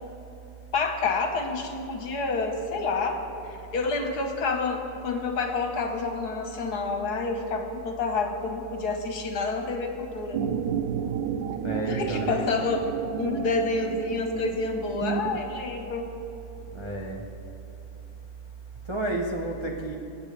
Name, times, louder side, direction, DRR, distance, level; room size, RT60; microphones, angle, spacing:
voice 1, 0.7-10.4 11.9-16.1, left 3 dB, 60° left, 4 dB, 1.5 m, -28 dB
sound 1, 10.3-15.4, right 7 dB, 75° right, 1.2 m, -31 dB
voice 2, 11.6-12.4 16.7-17.2 18.9-20.0, right 2 dB, 40° right, -1 dB, 0.4 m, -31 dB
26.5 x 9.0 x 3.4 m, 2.8 s
omnidirectional pair, 2.1 m